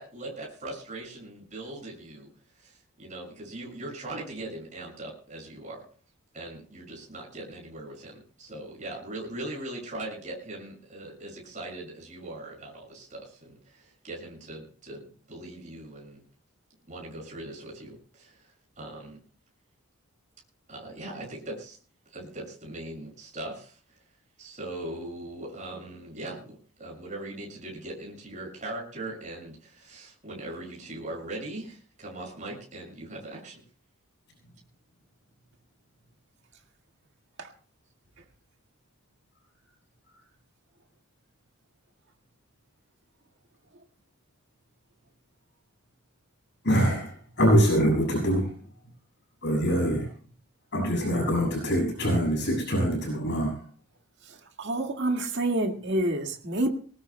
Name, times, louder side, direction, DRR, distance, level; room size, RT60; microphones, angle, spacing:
voice 1, 0.0-2.3 2.6-5.8 6.3-16.2 16.9-19.2 20.7-21.8 22.1-24.0 24.4-33.6, right 1 dB, 35° right, -2 dB, 6.8 m, -40 dB
voice 2, 46.6-48.5 49.4-50.1 50.7-53.5, equal, 55° left, 0 dB, 7.2 m, -24 dB
voice 3, 54.6-56.7, right 1 dB, 55° right, 3 dB, 1.9 m, -27 dB
23.0 x 19.0 x 2.2 m, 0.41 s
head